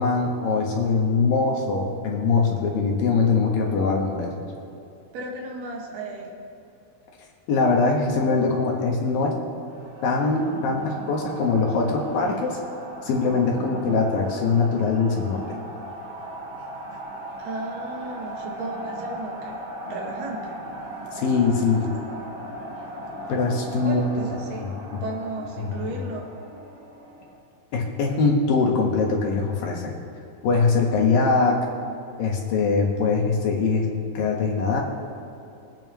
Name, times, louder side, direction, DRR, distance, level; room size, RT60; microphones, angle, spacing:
voice 1, 0.0-4.4 7.5-9.4 10.0-12.6 13.0-15.6 21.1-21.9 23.3-24.0 24.6-25.0 25.6-25.7 27.7-30.0 30.4-31.6 32.2-33.9 34.1-34.8, left 4 dB, 65° left, -1 dB, 2.9 m, -22 dB
voice 2, 5.1-6.4 17.4-20.6 23.8-24.7 25.0-26.3, right 2 dB, 75° right, -1 dB, 3.6 m, -34 dB
sound 1, 9.7-27.4, right 1 dB, 50° right, 2.0 m, -38 dB
23.0 x 9.1 x 3.1 m, 2.8 s
omnidirectional pair, 4.6 m